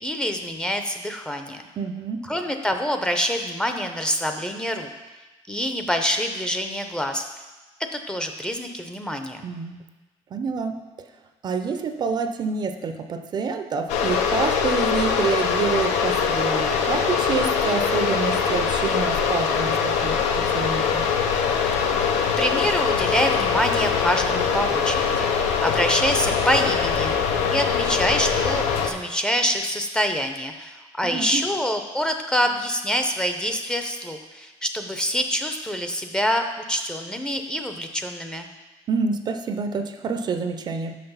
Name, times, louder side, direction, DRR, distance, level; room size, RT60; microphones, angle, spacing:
voice 1, 0.0-1.6 2.3-4.9 5.5-7.2 7.9-9.4 22.4-27.2 27.5-38.5, equal, 5° left, 5 dB, 0.6 m, -26 dB
voice 2, 1.8-2.3 9.4-9.8 10.3-10.9 11.4-21.1 31.0-31.5 38.9-40.9, right 5 dB, 40° right, 8 dB, 0.5 m, -27 dB
sound 1, 13.9-28.9, left 6 dB, 90° left, 0.7 m, -23 dB
6.3 x 5.8 x 5.5 m, 1.2 s
cardioid pair, 130°, 12 cm